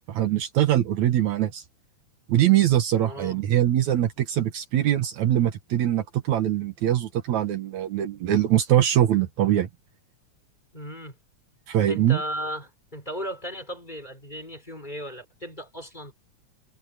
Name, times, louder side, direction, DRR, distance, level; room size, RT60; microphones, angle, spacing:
voice 1, 0.1-1.6 2.3-9.7 11.7-12.2, right 12 dB, 70° right, 2.5 m, -22 dB
voice 2, 3.0-3.4 10.7-11.2 11.9-16.1, equal, 15° left, 5.0 m, -36 dB
omnidirectional pair, 3.5 m